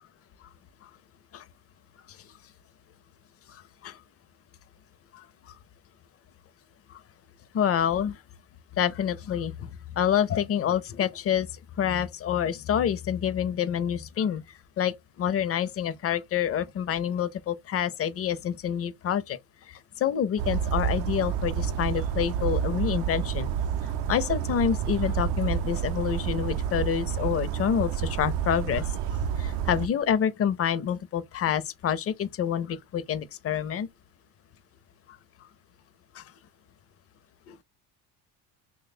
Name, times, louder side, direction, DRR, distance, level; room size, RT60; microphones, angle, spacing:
voice 1, 3.5-4.0 5.1-5.6 6.9-7.0 7.5-8.2 8.8-23.5 23.8-33.9 36.1-36.3 37.5-37.6, left 9 dB, 35° left, 0.4 m, -28 dB
Bird vocalization bird call bird song, 20.4-29.9, right 8 dB, 65° right, 0.5 m, -29 dB
3.0 x 2.2 x 4.1 m
supercardioid pair, 95°, 45 cm